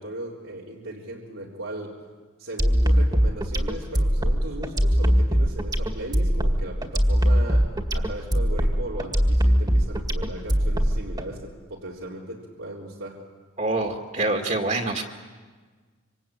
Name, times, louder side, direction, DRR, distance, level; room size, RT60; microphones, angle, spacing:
voice 1, 0.0-1.9 2.4-13.2, right 1 dB, 85° right, -4 dB, 3.7 m, -37 dB
sound 1, 2.6-11.2, equal, 20° right, 2.0 m, -21 dB
voice 2, 13.6-15.0, right 2 dB, 40° right, 2 dB, 2.1 m, -25 dB
26.5 x 25.5 x 8.7 m, 1.5 s
head